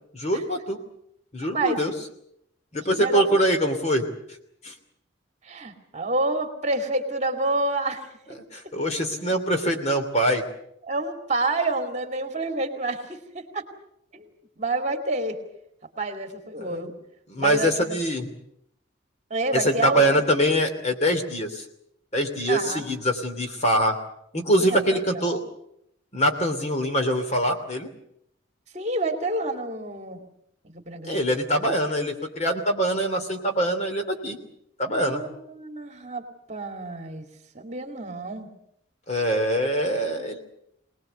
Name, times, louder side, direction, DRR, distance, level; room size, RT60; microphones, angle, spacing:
voice 1, 0.1-0.8 1.3-1.9 2.7-4.1 4.6-4.7 8.5-10.4 16.6-16.8 17.3-18.3 19.5-21.6 22.1-24.0 24.3-25.4 26.1-27.9 31.1-34.4 34.8-35.2 39.1-40.4, equal, 35° left, 5 dB, 2.9 m, -24 dB
voice 2, 2.8-3.2 5.4-8.1 10.8-13.6 14.1-14.3 14.6-15.4 16.0-16.9 17.4-18.0 19.3-20.3 22.5-22.8 24.6-25.0 25.3-25.4 28.7-30.3 30.6-31.2 34.9-37.3 37.5-38.5, right 2 dB, 35° right, 5 dB, 2.4 m, -28 dB
24.0 x 19.5 x 8.0 m, 0.75 s
head